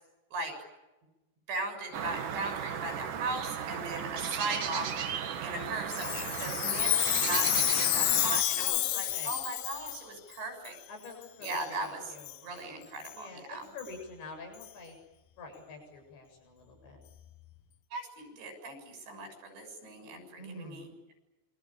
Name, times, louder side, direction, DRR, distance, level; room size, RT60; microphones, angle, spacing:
voice 1, 1.5-4.9 5.4-10.8 11.4-12.0 12.4-13.7 17.9-20.9, right 3 dB, 90° right, 6 dB, 9.4 m, -38 dB
sound 1, 1.9-8.4, right 8 dB, 55° right, 3.1 m, -36 dB
Chime, 5.9-10.0 10.7-10.8 11.4-11.6 12.2-12.4 13.0-13.1 13.8-13.9 14.6-14.7, left 13 dB, 70° left, 2.5 m, -29 dB
voice 2, 8.6-9.3 10.9-12.4 13.1-15.0 15.4-17.0 20.3-20.9, left 3 dB, 90° left, 3 dB, 9.6 m, -46 dB
27.5 x 24.5 x 8.9 m, 1.0 s
omnidirectional pair, 5.0 m